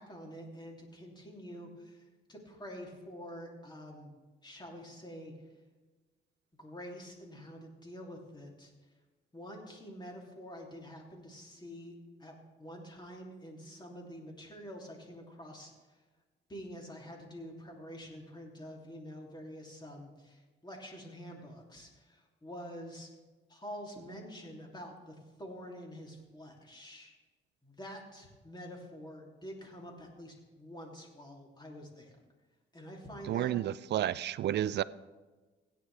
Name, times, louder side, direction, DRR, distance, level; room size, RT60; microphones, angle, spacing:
voice 1, 0.0-2.0 2.3-4.1 4.4-5.3 6.6-8.7 9.3-15.7 16.5-23.1 23.5-27.1 27.6-32.1 32.7-33.5, equal, 20° left, 2.8 m, -47 dB
voice 2, 33.3-34.8, right 12 dB, 60° right, 0.4 m, -31 dB
17.0 x 9.6 x 3.3 m
cardioid pair, 90°, 20 cm